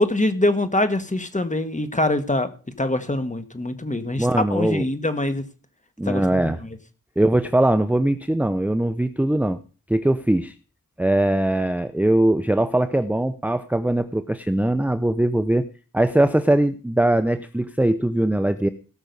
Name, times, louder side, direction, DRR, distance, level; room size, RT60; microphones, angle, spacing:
voice 1, 0.0-2.5 2.8-5.4 6.1-6.4, left 1 dB, 25° left, 9 dB, 1.6 m, -23 dB
voice 2, 4.2-4.8 6.0-6.6 7.2-9.6 9.9-10.5 11.0-15.6 15.9-18.7, right 1 dB, 5° right, 10 dB, 0.6 m, -21 dB
18.0 x 6.2 x 5.4 m, 0.37 s
wide cardioid pair, 75°, 32 cm